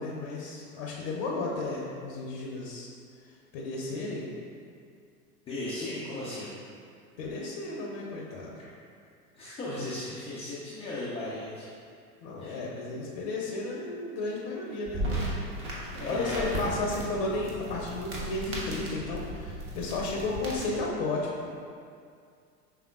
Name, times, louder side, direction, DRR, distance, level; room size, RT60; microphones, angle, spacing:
voice 1, 0.0-2.9 3.5-4.3 7.2-8.5 12.2-15.4 16.0-21.5, left 2 dB, 40° left, -3 dB, 0.7 m, -33 dB
voice 2, 5.5-6.5 9.3-11.7 12.4-12.6 15.9-16.6, left 2 dB, 15° left, -10 dB, 0.4 m, -36 dB
sound 1, 14.8-20.8, right 1 dB, 25° right, 1.0 m, -36 dB
5.5 x 3.4 x 2.4 m, 2.3 s
figure-of-eight pair, 90°, 48 cm